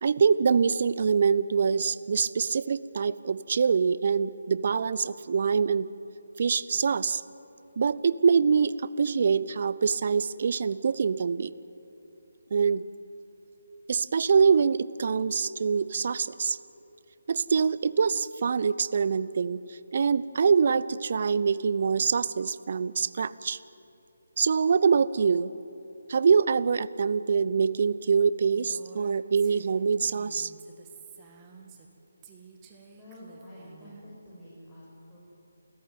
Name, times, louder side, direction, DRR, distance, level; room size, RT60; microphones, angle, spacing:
voice 1, 0.0-5.9 6.4-7.2 7.8-11.5 12.5-12.8 13.9-16.6 17.3-23.6 24.4-25.5 26.1-30.5, right 6 dB, 45° right, 17 dB, 0.7 m, -24 dB
Female speech woman speaking, 28.5-31.9 32.2-34.0, right 6 dB, 20° right, 2.2 m, -51 dB
voice 2, 33.0-35.2, equal, 10° left, -9 dB, 5.8 m, -48 dB
29.0 x 14.5 x 9.5 m, 2.9 s
figure-of-eight pair, 150°, 0 cm